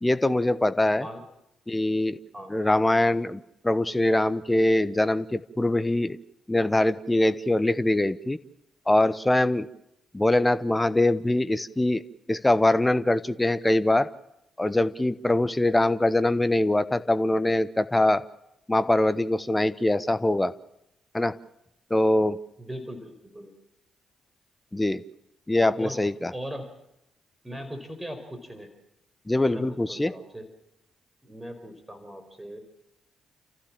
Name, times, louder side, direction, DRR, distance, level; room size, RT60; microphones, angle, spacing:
voice 1, 0.0-1.0 1.7-2.2 2.5-6.2 6.5-8.4 8.9-9.7 10.1-12.0 12.3-14.1 14.6-18.2 18.7-20.5 21.1-21.3 21.9-22.4 24.7-25.0 25.5-26.3 29.3-30.1, left 1 dB, 15° left, 14 dB, 1.0 m, -23 dB
voice 2, 0.9-1.3 2.3-2.5 22.6-23.5 25.8-26.0 26.3-26.7 27.4-28.7 29.5-30.5 31.2-32.6, equal, 10° right, 7 dB, 4.8 m, -39 dB
29.5 x 14.5 x 7.5 m, 0.85 s
hypercardioid pair, 40°, 0 cm